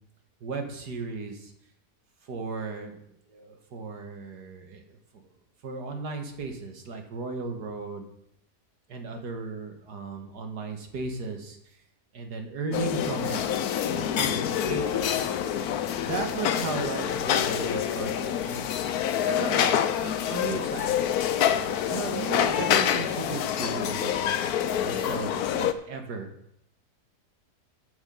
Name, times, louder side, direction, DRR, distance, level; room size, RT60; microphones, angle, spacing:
voice 1, 0.4-1.5 2.2-3.0 3.3-5.0 5.6-8.1 8.9-11.6 12.1-13.4 13.8-15.2 16.0-18.8 19.2-20.9 21.7-24.4 24.8-26.3, right 4 dB, 80° right, 4 dB, 2.1 m, -35 dB
sound 1, 12.7-25.7, left 9 dB, 70° left, 1.1 m, -27 dB
11.5 x 7.3 x 5.4 m, 0.74 s
omnidirectional pair, 1.7 m